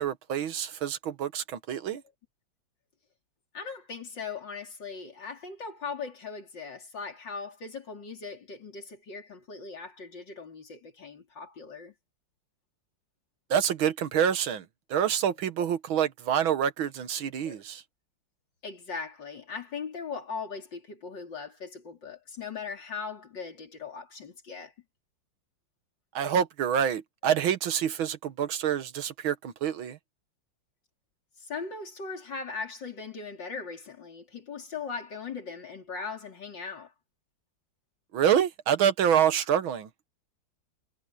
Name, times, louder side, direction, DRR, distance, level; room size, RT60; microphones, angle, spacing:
voice 1, 0.0-2.0 13.5-14.7 14.9-17.8 26.2-30.0 38.1-39.9, right 9 dB, 85° right, 2.0 m, -27 dB
voice 2, 3.5-11.9 17.4-17.6 18.6-24.7 31.4-36.9, left 5 dB, 65° left, 4.4 m, -39 dB
omnidirectional pair, 2.1 m